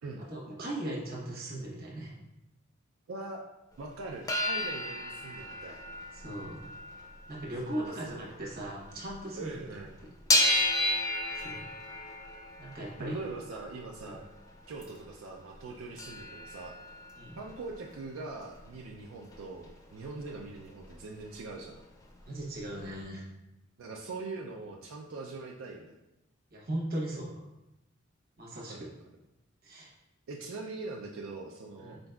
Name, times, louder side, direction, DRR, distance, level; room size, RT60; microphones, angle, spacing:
voice 1, 0.2-2.1 6.1-6.6 7.3-9.7 10.5-10.8 11.4-11.6 12.6-13.2 14.0-14.2 17.2-17.4 22.3-23.3 26.5-27.3 28.4-28.7 29.6-29.9 31.8-32.0, right 1 dB, 50° right, -3 dB, 1.0 m, -38 dB
voice 2, 3.1-3.4 3.8-5.8 7.6-8.5 9.4-10.0 13.0-14.2 14.7-16.8 17.4-21.8 23.8-25.9 28.7-28.9 30.3-32.0, right 3 dB, 85° right, 0 dB, 0.4 m, -42 dB
sound 1, 4.0-9.2 9.5-15.1 15.5-15.6 15.8-19.7 20.0-20.9 21.2-21.3 21.5-22.6 23.0-23.1, left 1 dB, 20° left, 0.5 m, -34 dB
4.3 x 3.9 x 2.3 m, 0.92 s
head